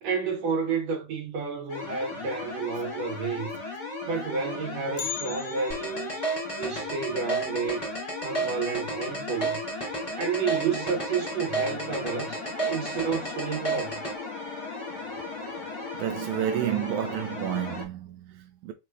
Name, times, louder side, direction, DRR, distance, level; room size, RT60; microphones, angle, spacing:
voice 1, 0.0-3.5 4.1-6.3 6.6-7.9 8.2-9.6 10.1-14.0, right 5 dB, 65° right, 1.9 m, -30 dB
sound 1, 1.7-17.9, left 3 dB, 55° left, 1.5 m, -37 dB
Bell, 5.0-9.1 9.3-9.4 9.9-10.0 10.8-10.9 11.7-12.0 12.3-12.4, left 9 dB, 90° left, 1.5 m, -42 dB
sound 2, 5.7-14.1, right 3 dB, 5° left, 2.1 m, -31 dB
voice 2, 15.9-18.7, right 10 dB, 85° right, 1.7 m, -30 dB
4.8 x 4.3 x 2.3 m
omnidirectional pair, 3.9 m